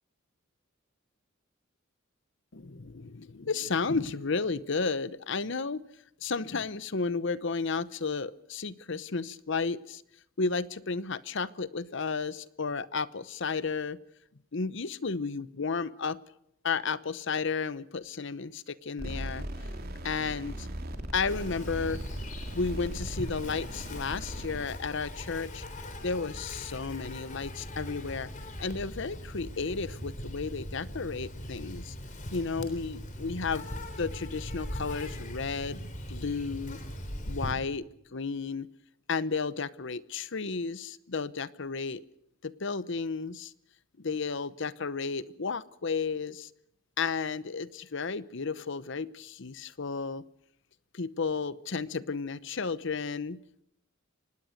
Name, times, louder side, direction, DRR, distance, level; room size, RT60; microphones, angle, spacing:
voice 1, 2.5-5.8 6.2-10.0 10.4-14.0 14.5-16.2 16.6-19.5 20.0-20.7 21.1-22.0 22.5-25.6 26.0-28.3 28.6-31.9 32.3-36.8 37.3-37.9 38.1-38.7 39.1-42.0 42.4-43.5 44.0-46.5 47.0-50.2 50.9-53.4, left 4 dB, 60° left, 17 dB, 0.9 m, -33 dB
sound 1, 19.0-24.6, right 1 dB, 50° right, 3.0 m, -39 dB
Insect, 21.3-37.5, equal, 40° left, 3.6 m, -40 dB
25.0 x 19.5 x 6.6 m, 0.76 s
head